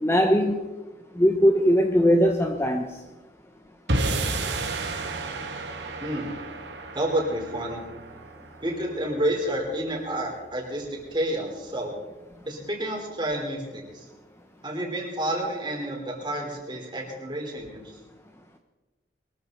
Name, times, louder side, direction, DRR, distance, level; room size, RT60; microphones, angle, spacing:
voice 1, 0.0-0.6 1.2-2.9, equal, 15° left, 4 dB, 0.9 m, -20 dB
sound 1, 3.9-10.3, right 2 dB, 75° right, 1.8 m, -32 dB
voice 2, 6.9-7.9 8.6-11.9 12.5-14.1 14.6-18.0, right 1 dB, 25° right, 0 dB, 3.9 m, -30 dB
22.5 x 14.0 x 4.0 m, 1.2 s
head